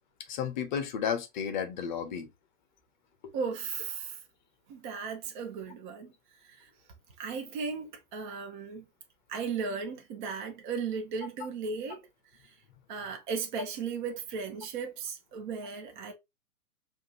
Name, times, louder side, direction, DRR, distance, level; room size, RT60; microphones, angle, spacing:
voice 1, 0.3-2.3 3.2-3.3, left 7 dB, 30° left, 0.8 m, -33 dB
voice 2, 3.3-4.2 4.7-6.1 6.4-6.7 7.2-8.8 9.3-12.0 12.9-16.1, right 5 dB, 30° right, 0.9 m, -36 dB
5.0 x 2.6 x 2.9 m
figure-of-eight pair, 125°, 47 cm